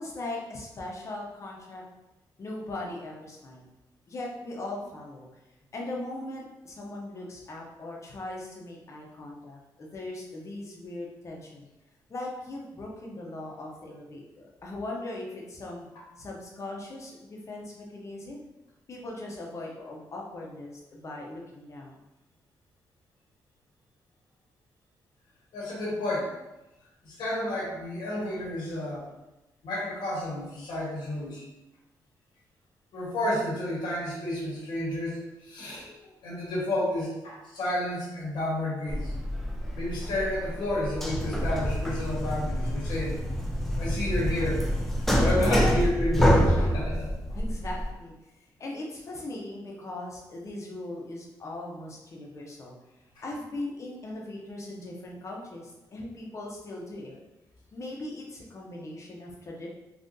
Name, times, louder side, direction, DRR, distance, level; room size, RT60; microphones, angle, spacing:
voice 1, 0.0-1.8 2.4-3.7 4.1-5.3 5.7-11.7 12.1-15.9 16.2-18.4 18.9-22.0 46.9-48.1 48.6-52.7 53.2-57.2 57.7-59.7, left 2 dB, 40° left, -2 dB, 0.8 m, -39 dB
voice 2, 25.5-26.3 27.0-29.1 29.6-31.4 32.9-35.9 36.2-39.1 39.7-43.2 43.8-44.6 45.2-46.9, left 1 dB, 85° left, -5 dB, 1.3 m, -31 dB
sound 1, 38.9-47.9, equal, 5° left, 0.4 m, -27 dB
3.6 x 2.5 x 2.6 m, 0.99 s
cardioid pair, 105°, 7 cm